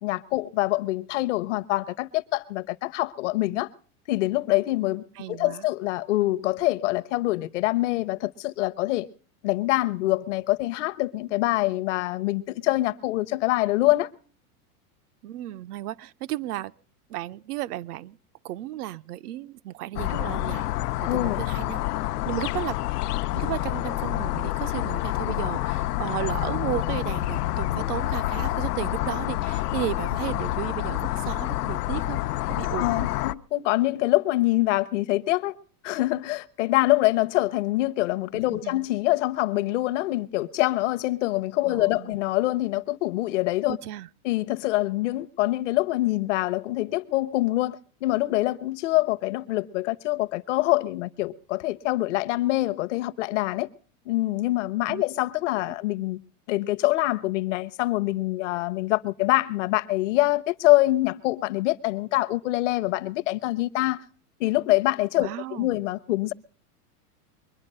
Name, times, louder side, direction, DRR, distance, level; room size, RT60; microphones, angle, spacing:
voice 1, 0.0-3.7 4.1-9.1 9.4-14.1 21.1-21.4 32.8-35.5 35.8-43.8 44.2-53.7 54.1-56.2 56.5-64.0 64.4-66.3, left 18 dB, 50° left, 0.7 m, -25 dB
voice 2, 5.2-5.7 15.2-16.7 17.1-18.2 18.4-20.7 21.1-21.9 22.3-22.8 23.3-32.2 32.5-33.1 38.3-38.8 41.7-42.2 43.7-44.1 54.9-55.0 55.6-55.7 65.2-65.8, right 14 dB, 80° right, 0.7 m, -34 dB
sound 1, 19.9-33.3, left 16 dB, 90° left, 0.7 m, -28 dB
22.5 x 10.5 x 5.4 m
supercardioid pair, 170°, 45 cm